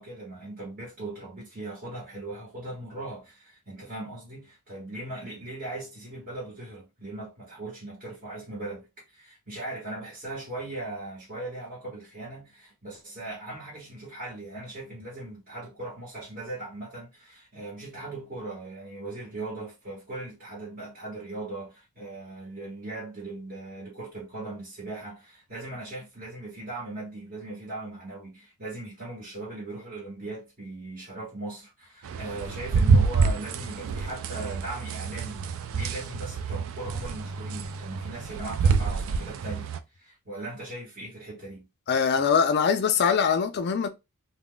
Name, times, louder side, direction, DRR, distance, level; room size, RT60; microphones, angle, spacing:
voice 1, 0.0-41.7, right 2 dB, 40° right, 1.1 m, -39 dB
sound 1, 32.1-39.8, right 5 dB, 65° right, 0.3 m, -27 dB
voice 2, 41.9-43.9, left 6 dB, 50° left, 0.4 m, -23 dB
2.3 x 2.0 x 3.7 m
head